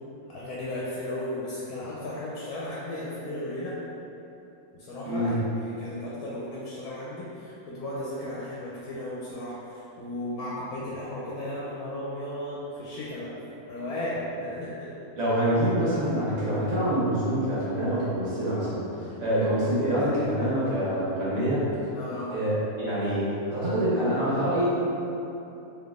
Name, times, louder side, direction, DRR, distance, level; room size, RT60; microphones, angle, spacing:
voice 1, 0.3-3.8 4.7-13.3 13.7-15.1 21.9-22.3, left 1 dB, 80° left, -7 dB, 1.2 m, -35 dB
voice 2, 15.2-21.6 22.3-24.7, right 1 dB, 65° right, -10 dB, 1.7 m, -26 dB
3.8 x 3.3 x 3.6 m, 2.9 s
omnidirectional pair, 1.6 m